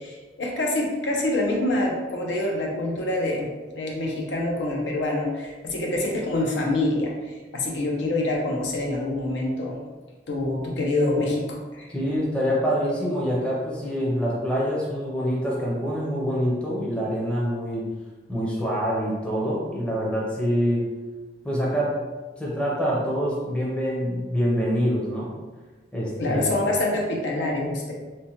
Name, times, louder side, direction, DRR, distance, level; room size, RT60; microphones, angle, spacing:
voice 1, 0.0-9.8 10.3-11.9 26.2-27.9, left 2 dB, 85° left, -1 dB, 0.6 m, -26 dB
voice 2, 11.9-17.9 18.3-20.8 21.4-22.0 22.4-25.4 25.9-26.5, equal, 5° left, -5 dB, 0.5 m, -25 dB
3.0 x 2.1 x 2.8 m, 1.3 s
head